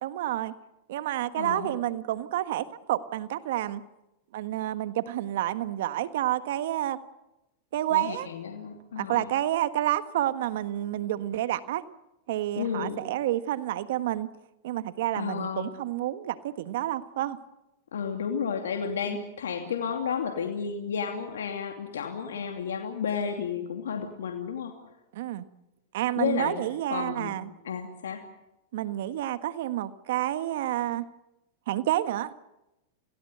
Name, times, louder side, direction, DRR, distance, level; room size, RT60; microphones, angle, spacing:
voice 1, 0.0-0.6 0.9-3.8 4.3-7.0 7.7-8.3 9.0-11.8 12.3-14.3 14.6-17.4 19.1-19.2 25.1-25.4 25.9-27.5 28.7-31.1 31.7-32.3, right 13 dB, 65° right, 12 dB, 1.5 m, -29 dB
voice 2, 1.4-1.7 7.9-9.3 12.6-13.0 15.1-15.7 17.9-24.7 26.2-26.6 26.9-27.3 27.6-28.2, left 7 dB, 90° left, 3 dB, 2.7 m, -32 dB
28.0 x 17.0 x 8.0 m, 0.94 s
hypercardioid pair, 125°, 0 cm